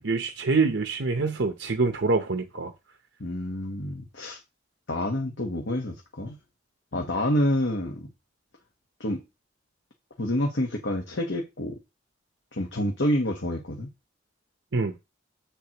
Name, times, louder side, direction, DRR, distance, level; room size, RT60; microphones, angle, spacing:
voice 1, 0.0-2.7 14.7-14.9, right 3 dB, 70° right, 0.8 m, -25 dB
voice 2, 3.2-4.4 4.9-6.4 6.9-8.1 9.0-9.2 10.2-11.8 12.5-13.9, left 1 dB, 70° left, 1.2 m, -28 dB
7.7 x 6.8 x 3.0 m
head